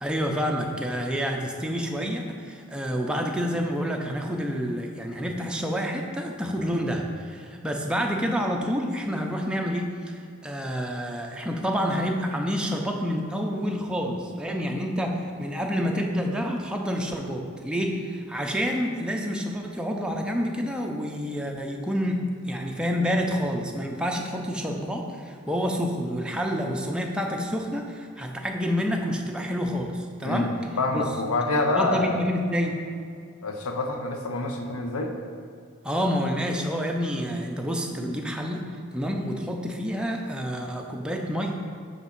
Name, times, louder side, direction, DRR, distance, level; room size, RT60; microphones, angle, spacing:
voice 1, 0.0-30.5 30.9-31.0 31.6-32.8 35.8-38.6 38.9-41.5, equal, 5° right, 1 dB, 0.4 m, -28 dB
voice 2, 30.8-32.2 33.4-35.1 38.0-38.1, left 2 dB, 90° left, 4 dB, 0.6 m, -27 dB
5.1 x 3.5 x 5.6 m, 2.2 s
head